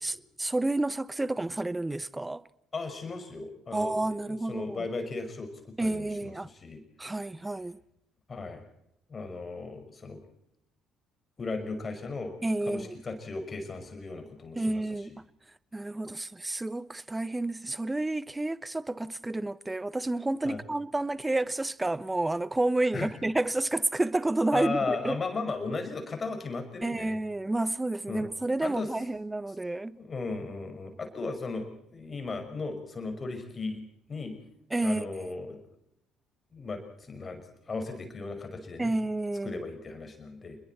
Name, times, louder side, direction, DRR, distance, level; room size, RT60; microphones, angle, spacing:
voice 1, 0.0-2.4 3.7-4.9 5.8-6.5 7.0-7.8 12.4-13.0 14.6-15.1 15.7-25.2 26.8-30.0 34.7-35.1 38.8-39.6, right 2 dB, 15° right, 0.9 m, -30 dB
voice 2, 2.7-6.8 8.3-8.6 9.1-10.2 11.4-12.3 12.7-14.8 20.4-20.6 22.9-23.1 24.5-27.2 28.1-28.3 28.6-28.9 30.0-33.8 34.1-34.4 34.8-35.6 36.5-38.9 39.4-40.6, left 3 dB, 30° left, 5.6 m, -36 dB
28.5 x 21.5 x 4.4 m
figure-of-eight pair, 50°, 0 cm